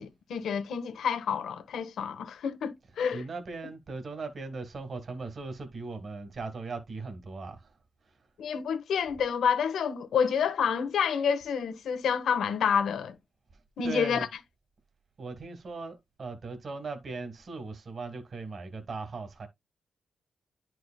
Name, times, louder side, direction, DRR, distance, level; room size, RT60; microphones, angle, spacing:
voice 1, 0.0-3.2 8.4-13.2 13.8-14.3, left 7 dB, 85° left, 1.0 m, -28 dB
voice 2, 3.1-7.8 8.0-8.3 13.8-14.3 15.2-19.5, right 3 dB, 40° right, 1.5 m, -38 dB
10.5 x 4.7 x 2.2 m
wide cardioid pair, 155°, 0 cm